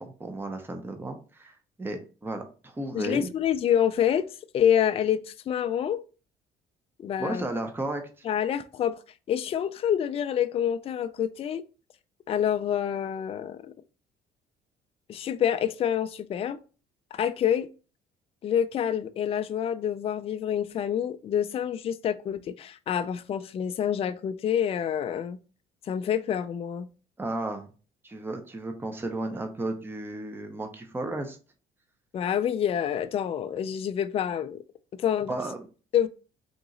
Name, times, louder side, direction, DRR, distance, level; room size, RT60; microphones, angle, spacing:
voice 1, 0.0-3.3 7.2-8.0 27.2-27.7 28.0-31.4 35.3-35.7, right 2 dB, 15° right, 0.7 m, -34 dB
voice 2, 2.9-6.0 7.0-7.5 8.2-9.0 9.3-11.6 12.3-13.7 15.1-16.6 17.1-17.7 18.4-25.4 25.8-26.9 32.1-34.6 34.9-35.3 35.9-36.1, left 9 dB, 35° left, 0.3 m, -27 dB
3.8 x 2.9 x 3.8 m
cardioid pair, 110°, 17 cm